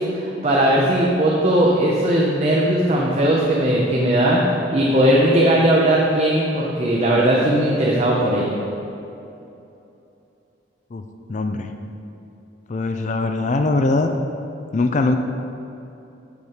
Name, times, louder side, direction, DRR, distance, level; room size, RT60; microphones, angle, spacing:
voice 1, 0.0-4.4 4.7-8.6, right 1 dB, 35° right, -3 dB, 0.8 m, -18 dB
voice 2, 11.3-11.7 12.7-14.1 14.7-15.2, left 3 dB, 40° left, 6 dB, 0.4 m, -21 dB
8.1 x 7.0 x 5.0 m, 2.8 s
head